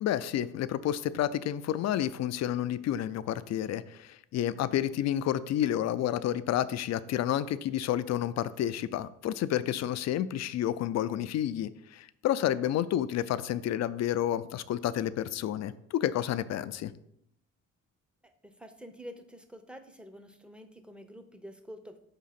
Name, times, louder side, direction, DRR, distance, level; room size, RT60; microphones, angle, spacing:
voice 1, 0.0-16.9, left 11 dB, 60° left, 14 dB, 0.4 m, -30 dB
voice 2, 18.2-22.0, equal, 5° right, 8 dB, 0.7 m, -48 dB
5.0 x 3.7 x 5.7 m, 0.75 s
cardioid pair, 90°, 30 cm